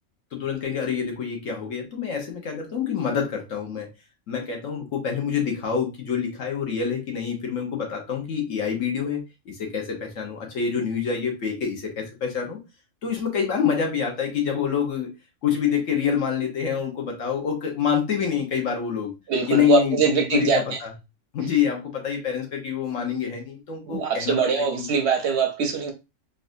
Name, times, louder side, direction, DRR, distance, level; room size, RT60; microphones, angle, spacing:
voice 1, 0.3-3.9 4.3-12.6 13.0-15.1 15.4-19.1 19.5-20.9 21.3-24.5 24.8-24.9, left 7 dB, 70° left, 1.3 m, -26 dB
voice 2, 19.3-20.8 23.9-25.9, right 5 dB, 65° right, 0.7 m, -22 dB
4.0 x 2.5 x 2.5 m
omnidirectional pair, 1.4 m